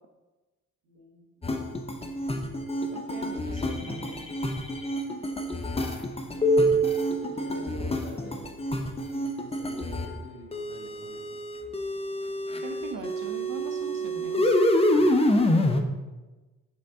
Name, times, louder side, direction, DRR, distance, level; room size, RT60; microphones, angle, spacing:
voice 1, 0.8-1.8 5.0-5.7 6.3-6.7 7.2-8.4 9.0-11.4 14.9-15.8, right 1 dB, 80° right, -4 dB, 1.6 m, -46 dB
sound 1, 1.4-10.1 10.5-15.8, equal, 15° left, 0.7 m, -27 dB
voice 2, 2.9-4.3 12.6-14.6, right 4 dB, 45° right, 4 dB, 0.8 m, -41 dB
7.3 x 4.6 x 3.7 m, 1.2 s
figure-of-eight pair, 40°, 46 cm